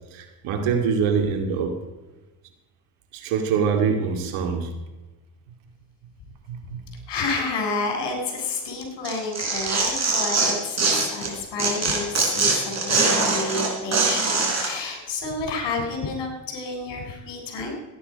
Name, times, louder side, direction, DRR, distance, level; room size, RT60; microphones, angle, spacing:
voice 1, 0.1-1.8 3.1-4.7 6.5-6.8, right 6 dB, 80° right, 6 dB, 2.4 m, -24 dB
voice 2, 7.1-17.7, left 3 dB, 60° left, 3 dB, 4.3 m, -30 dB
Tearing, 9.0-11.3 11.6-14.7, right 4 dB, 35° right, 4.1 m, -22 dB
15.0 x 9.7 x 5.3 m, 1.1 s
supercardioid pair, 90°, 48 cm